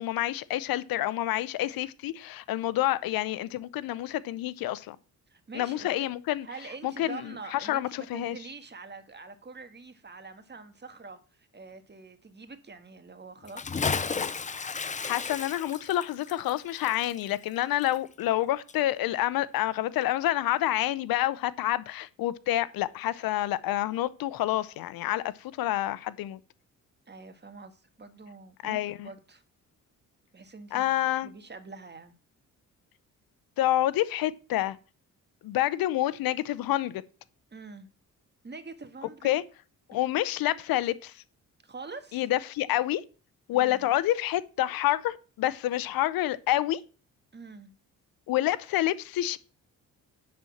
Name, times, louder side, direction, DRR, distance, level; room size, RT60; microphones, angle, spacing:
voice 1, 0.0-5.0 5.5-6.5 6.8-8.4 14.2-14.3 15.0-26.4 28.6-29.1 30.7-31.3 33.6-34.8 35.4-37.0 39.2-39.4 39.9-41.1 42.1-43.0 43.5-46.8 48.3-49.4, left 14 dB, 80° left, 0.7 m, -28 dB
voice 2, 5.3-6.1 6.4-14.2 27.1-29.4 30.3-30.9 31.2-32.1 37.5-37.9 38.4-39.4 41.6-42.2 43.5-43.9 47.3-47.7, right 4 dB, 30° right, 1.7 m, -45 dB
Bathtub (filling or washing) / Splash splatter, 13.4-18.4 18.7-18.8, left 5 dB, 20° left, 0.6 m, -33 dB
10.5 x 4.3 x 7.1 m
cardioid pair, 75°, 34 cm